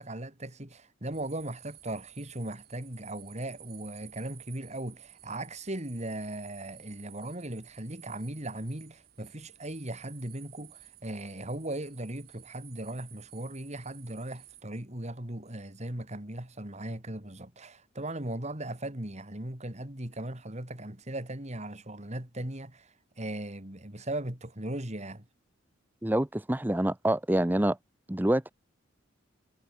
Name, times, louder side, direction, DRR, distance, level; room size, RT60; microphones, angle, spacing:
voice 1, 0.0-25.2, right 1 dB, 35° right, 3.1 m, -38 dB
sound 1, 1.1-14.6, right 13 dB, 50° right, 3.9 m, -54 dB
voice 2, 26.0-27.8 28.1-28.5, right 1 dB, 10° right, 0.7 m, -26 dB
head